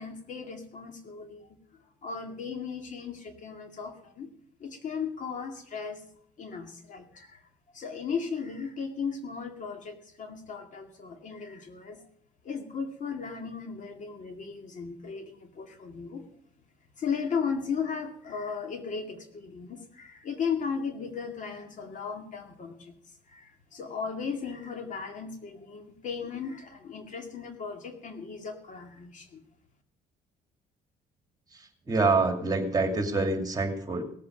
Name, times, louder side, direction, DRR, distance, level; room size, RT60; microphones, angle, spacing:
voice 1, 0.0-1.6 2.0-4.3 4.6-6.0 6.4-7.4 7.7-12.0 12.4-16.3 17.0-22.9 23.3-29.4, left 6 dB, 50° left, 5 dB, 2.3 m, -36 dB
voice 2, 31.5-34.0, right 3 dB, 20° right, 5 dB, 2.5 m, -26 dB
17.5 x 8.5 x 6.4 m, 0.63 s
cardioid pair, 110°, 17 cm